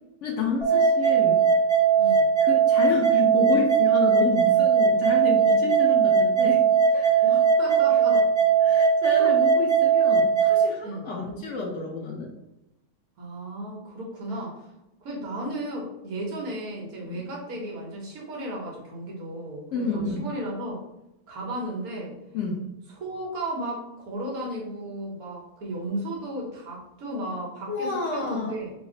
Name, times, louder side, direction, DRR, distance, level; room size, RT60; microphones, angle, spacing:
voice 1, 0.2-1.4 2.4-6.6 6.9-7.3 8.6-12.3 17.0-17.2 19.7-20.2 22.3-22.6 27.7-28.6, left 4 dB, 70° left, -1 dB, 0.7 m, -29 dB
sound 1, 0.6-10.6, right 6 dB, 5° left, 0.7 m, -20 dB
voice 2, 7.2-8.3 9.2-9.3 10.8-11.1 13.2-14.6 15.0-20.8 21.3-22.1 22.9-28.7, right 1 dB, 60° right, -2 dB, 1.3 m, -34 dB
3.3 x 2.0 x 3.7 m, 0.93 s
omnidirectional pair, 1.8 m